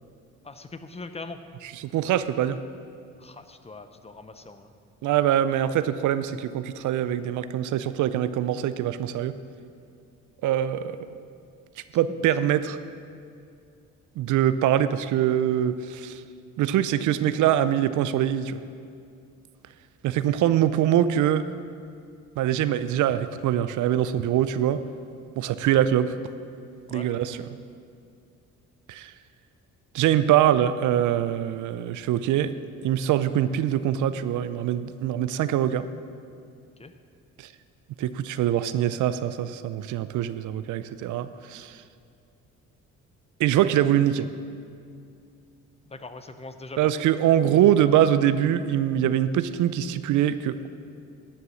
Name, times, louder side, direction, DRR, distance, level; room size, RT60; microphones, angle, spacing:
voice 1, 0.4-1.4 3.2-4.7 26.9-27.1 36.8-36.9 45.8-46.9, left 3 dB, 20° left, 9 dB, 0.7 m, -41 dB
voice 2, 1.8-2.6 5.0-9.3 10.4-11.0 11.9-12.8 14.2-16.2 16.6-18.6 20.0-21.5 22.4-24.8 25.4-26.2 26.9-27.4 28.9-29.1 29.9-32.5 32.8-35.9 37.4-37.5 38.0-41.8 43.4-44.3 46.8-50.7, right 11 dB, 80° right, 13 dB, 0.5 m, -23 dB
11.0 x 6.9 x 6.3 m, 2.4 s
cardioid pair, 90°, 30 cm